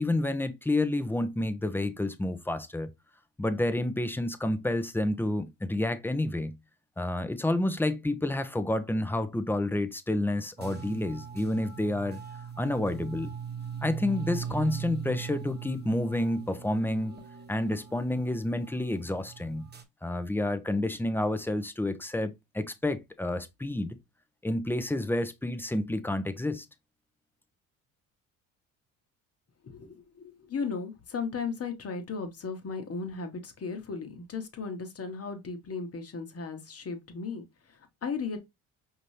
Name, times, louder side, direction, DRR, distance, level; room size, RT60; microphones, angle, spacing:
voice 1, 0.0-2.9 3.4-6.6 7.0-12.2 12.6-13.3 13.8-17.2 17.5-19.7 20.0-24.0 24.4-26.7, left 1 dB, 5° left, 0.7 m, -29 dB
sound 1, 10.6-19.8, right 7 dB, 25° right, 1.2 m, -40 dB
voice 2, 29.6-38.4, left 5 dB, 35° left, 1.2 m, -36 dB
5.1 x 2.8 x 3.1 m
hypercardioid pair, 60°, 39 cm